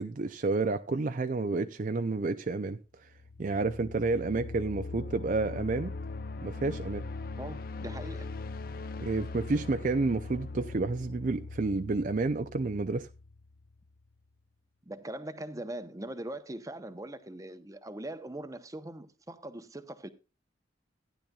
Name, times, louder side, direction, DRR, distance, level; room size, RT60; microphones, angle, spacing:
voice 1, 0.0-2.8 3.4-5.9 6.4-7.0 9.0-13.1, right 3 dB, 45° right, 0.5 m, -30 dB
sound 1, 3.1-13.9, left 3 dB, 50° left, 0.5 m, -40 dB
voice 2, 7.4-8.3 14.8-20.1, right 1 dB, 20° right, 0.8 m, -41 dB
15.5 x 10.5 x 2.3 m
head